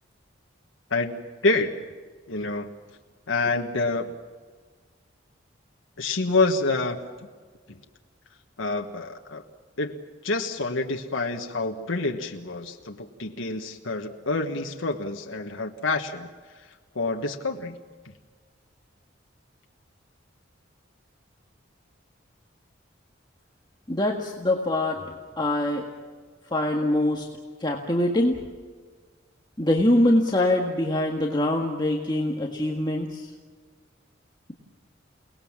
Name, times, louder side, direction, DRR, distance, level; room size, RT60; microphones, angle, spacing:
voice 1, 0.9-1.9 2.3-2.7 3.3-4.1 6.0-7.0 7.7-7.8 8.6-9.4 9.8-16.3 16.9-17.8, left 3 dB, 90° left, 3 dB, 1.5 m, -27 dB
voice 2, 23.9-25.9 26.5-27.3 27.6-28.4 29.6-33.3, left 1 dB, 20° left, 0 dB, 1.7 m, -24 dB
29.5 x 19.0 x 7.4 m, 1.5 s
head